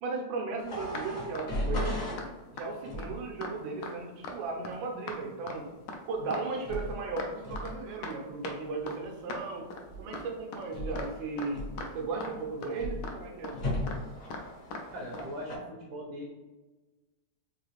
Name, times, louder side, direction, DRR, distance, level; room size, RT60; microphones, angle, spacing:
voice 1, 0.0-2.2 2.5-5.7 6.1-9.7 10.0-13.6, right 4 dB, 90° right, 1 dB, 1.4 m, -36 dB
sound 1, 0.6-0.7 0.9-1.1 1.3-1.5 1.8-1.9 2.2-2.3 2.6-2.7 3.0-3.1 3.4-3.5 3.8-3.9 4.2-4.4 4.6-4.8 5.1-5.2 5.5-5.6 5.9-6.0 6.3-6.5 6.7-7.3 7.6-7.7 8.0-8.1 8.4-8.6 8.9-9.0 9.3-9.4 9.7-9.8 10.1-10.3 10.5-10.6 11.0-11.1 11.4-11.5 11.8-11.9 12.2-12.3 12.6-12.7 13.0-13.2 13.4-13.6 13.9-14.0 14.3-14.4 14.7-14.8 15.1-15.3, left 3 dB, 75° left, 1.1 m, -39 dB
sound 2, 0.6-2.2 2.8-3.2 6.6-7.0 7.4-7.8 9.9-10.2 10.7-11.1 11.5-12.0 12.7-13.1 13.5-15.6, left 1 dB, 45° left, 1.0 m, -36 dB
voice 2, 14.9-16.3, equal, 70° right, -2 dB, 1.0 m, -40 dB
3.7 x 2.4 x 3.0 m, 1.2 s
omnidirectional pair, 2.1 m